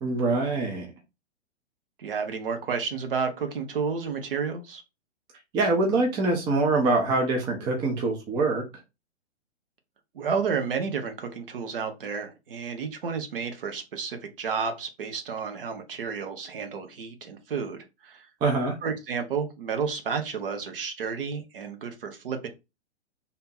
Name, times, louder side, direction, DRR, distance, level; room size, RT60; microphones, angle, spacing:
voice 1, 0.0-0.9 5.5-8.6 18.4-18.8, right 3 dB, 10° right, 0.5 m, -24 dB
voice 2, 2.0-4.8 10.1-18.3 18.8-22.5, right 6 dB, 50° right, 1.0 m, -31 dB
3.5 x 2.8 x 4.2 m
figure-of-eight pair, 115°, 34 cm